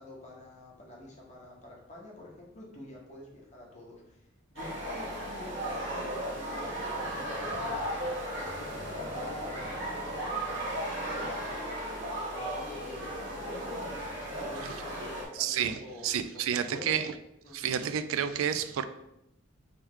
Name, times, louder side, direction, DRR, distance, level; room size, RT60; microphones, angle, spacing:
voice 1, 0.0-11.7 12.2-16.1 16.5-17.2 17.4-17.6, left 1 dB, 35° left, -3 dB, 1.0 m, -49 dB
sound 1, 4.6-15.3, right 1 dB, 60° right, 1.1 m, -35 dB
voice 2, 15.3-17.1 17.5-18.8, right 8 dB, 85° right, 10 dB, 0.3 m, -30 dB
3.3 x 3.0 x 3.6 m, 0.84 s
head